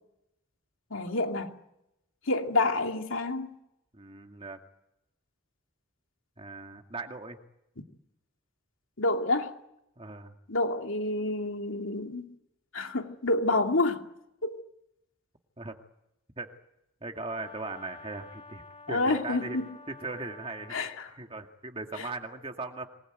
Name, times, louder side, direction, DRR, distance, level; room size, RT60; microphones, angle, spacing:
voice 1, 0.9-1.5 2.3-3.5 9.0-9.5 10.5-12.3 12.7-14.0 14.4-14.6 18.9-19.7 20.7-21.1, left 2 dB, 75° left, 2.5 m, -28 dB
voice 2, 3.9-4.6 6.4-7.4 10.0-10.4 15.6-15.8 16.4-16.5 17.0-19.6 19.9-20.8 21.1-22.9, right 3 dB, 25° right, 2.0 m, -39 dB
Brass instrument, 17.1-21.0, left 3 dB, 30° left, 2.3 m, -50 dB
27.0 x 20.5 x 9.4 m
head